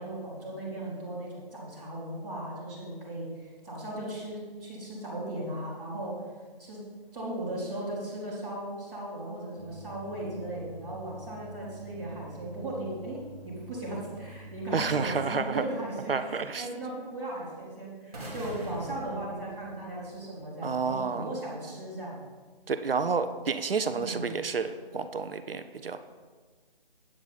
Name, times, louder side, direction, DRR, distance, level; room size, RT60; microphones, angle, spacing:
voice 1, 0.0-6.2 6.6-6.8 7.1-22.2 23.9-24.3, right 1 dB, ahead, -24 dB, 0.9 m, -37 dB
sound 1, 9.6-15.3, right 1 dB, 80° left, 2.2 m, -47 dB
voice 2, 14.7-15.6 16.1-16.7 20.6-21.3 22.7-26.0, right 5 dB, 70° right, 10 dB, 0.7 m, -30 dB
sound 2, 18.1-20.2, equal, 40° right, 2.6 m, -42 dB
8.8 x 8.5 x 4.1 m, 1.4 s
hypercardioid pair, 175°, 29 cm